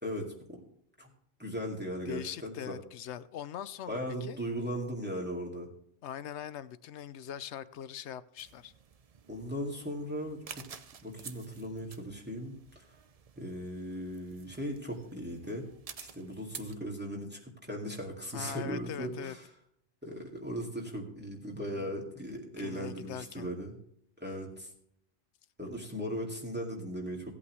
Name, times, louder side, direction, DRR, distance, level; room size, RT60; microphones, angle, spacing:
voice 1, 0.0-0.6 1.0-1.1 1.4-2.8 3.9-5.7 9.3-10.6 11.0-12.9 13.4-15.6 16.0-19.4 20.0-23.7 24.2-24.7 25.6-27.3, equal, 10° right, -2 dB, 2.2 m, -38 dB
voice 2, 2.1-4.4 6.0-8.7 18.3-19.3 21.6-22.0 22.6-23.5, left 9 dB, 75° left, 15 dB, 1.0 m, -41 dB
sound 1, 8.4-16.7, right 6 dB, 40° right, 0.6 m, -51 dB
16.5 x 8.5 x 3.1 m, 0.71 s
omnidirectional pair, 1.2 m